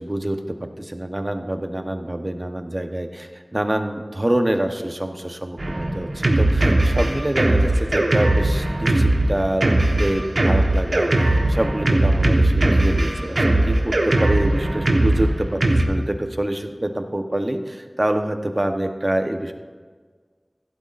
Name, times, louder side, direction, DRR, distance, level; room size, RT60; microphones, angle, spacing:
voice 1, 0.0-19.5, right 1 dB, 35° right, 5 dB, 1.0 m, -26 dB
Drum kit, 5.6-15.8, right 1 dB, 85° right, 1.3 m, -19 dB
16.0 x 12.0 x 2.6 m, 1.5 s
wide cardioid pair, 50°, 0 cm